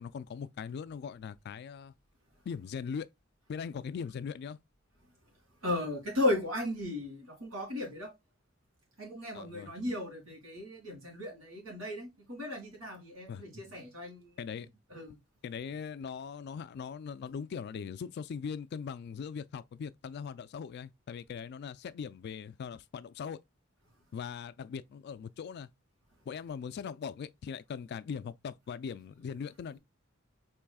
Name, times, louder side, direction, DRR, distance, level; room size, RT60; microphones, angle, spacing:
voice 1, 0.0-1.9 2.5-3.1 3.5-4.6 9.3-9.7 13.3-13.4 14.4-14.7 15.4-23.4 24.1-25.7 26.3-29.8, left 6 dB, 55° left, 0.3 m, -40 dB
voice 2, 5.6-8.1 9.0-14.3 14.9-15.2, left 1 dB, 80° right, 2.3 m, -35 dB
4.7 x 3.1 x 2.2 m
head